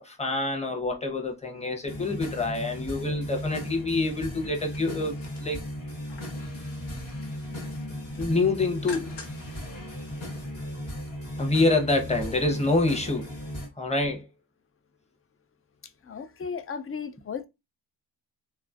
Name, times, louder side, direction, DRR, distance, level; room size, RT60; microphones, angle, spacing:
voice 1, 0.0-5.6 8.2-9.1 11.4-13.3 13.8-14.3, left 2 dB, 15° left, 0.9 m, -26 dB
sound 1, 1.8-13.7, left 1 dB, 75° left, 1.4 m, -36 dB
sound 2, 4.4-6.5 6.9-7.4 7.7-9.6 9.9-10.0, left 5 dB, 60° left, 0.9 m, -48 dB
voice 2, 15.8-17.4, left 6 dB, 30° left, 0.4 m, -36 dB
3.1 x 2.0 x 2.4 m
supercardioid pair, 40°, 47 cm